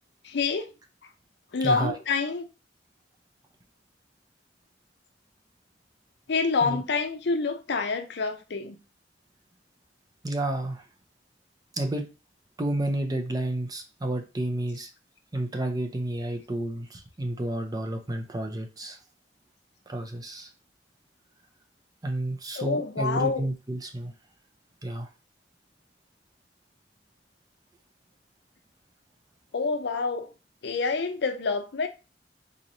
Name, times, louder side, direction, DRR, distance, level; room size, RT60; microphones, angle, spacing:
voice 1, 0.2-0.7 1.5-2.4 6.3-8.8 22.6-23.4 29.5-30.3 30.6-31.9, left 4 dB, 65° left, 0.5 m, -27 dB
voice 2, 1.6-2.0 6.6-6.8 10.2-10.8 11.7-12.1 12.6-14.9 15.3-19.0 19.9-20.5 22.0-24.1 24.8-25.1, right 1 dB, 20° right, 0.5 m, -30 dB
4.0 x 3.0 x 2.6 m
head